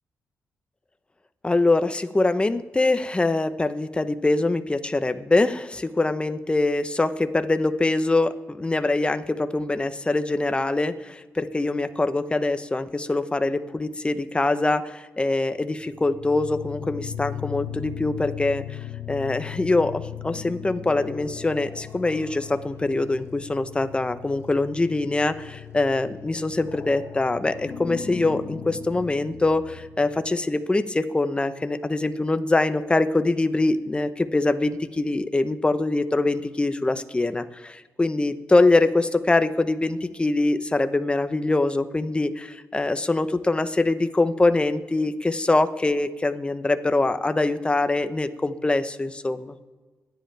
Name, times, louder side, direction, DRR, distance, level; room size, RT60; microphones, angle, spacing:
voice 1, 1.4-18.8 19.1-49.5, left 2 dB, 20° left, 10 dB, 0.9 m, -23 dB
sound 1, 15.8-30.4, left 9 dB, 55° left, 1.4 m, -38 dB
24.5 x 10.5 x 3.4 m, 1.3 s
cardioid pair, 80°, 5 cm